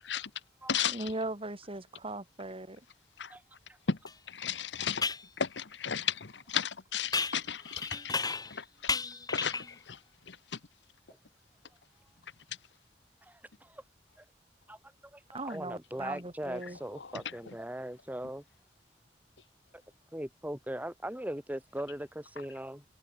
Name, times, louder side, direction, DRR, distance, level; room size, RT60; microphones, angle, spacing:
voice 1, 0.9-2.8 15.3-16.8, right 2 dB, 30° right, 4.3 m, -38 dB
sound 1, 4.1-4.2 5.0-5.3 7.1-8.6 8.9-9.8, left 4 dB, 20° left, 3.8 m, -33 dB
voice 2, 4.4-5.0 5.4-6.1 6.5-7.8 9.3-9.5, left 7 dB, 75° left, 1.1 m, -32 dB
voice 3, 13.2-13.8 14.2-14.3 14.7-14.8 15.1-18.4 20.1-22.8, right 1 dB, 10° right, 2.8 m, -39 dB
head